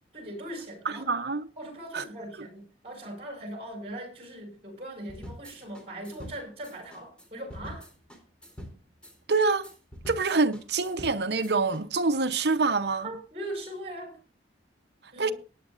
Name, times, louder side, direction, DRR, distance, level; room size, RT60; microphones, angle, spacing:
voice 1, 0.1-1.1 1.6-7.9 13.0-14.2 15.1-15.3, right 1 dB, 35° right, 5.6 m, -40 dB
voice 2, 1.1-1.5 1.9-2.0 9.3-9.7 10.1-13.1 15.2-15.3, right 4 dB, 60° right, 0.9 m, -26 dB
sound 1, 5.1-11.8, equal, 5° left, 3.4 m, -45 dB
18.5 x 9.7 x 2.6 m
head